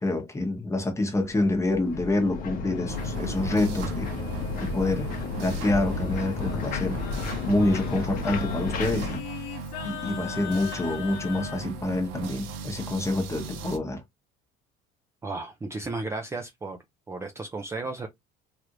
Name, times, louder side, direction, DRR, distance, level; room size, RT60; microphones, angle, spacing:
voice 1, 0.0-4.1 4.6-5.1 5.4-7.0 7.5-9.2 9.8-14.0, left 2 dB, 15° left, 1.0 m, -27 dB
sound 1, 1.1-9.2, left 4 dB, 45° left, 0.9 m, -32 dB
sound 2, 2.9-13.8, right 4 dB, 75° right, 0.8 m, -38 dB
Singing, 5.6-11.6, left 12 dB, 90° left, 0.7 m, -40 dB
voice 2, 15.2-16.8 17.1-18.1, right 3 dB, 15° right, 0.5 m, -34 dB
3.2 x 2.5 x 2.9 m
cardioid pair, 130°, 20 cm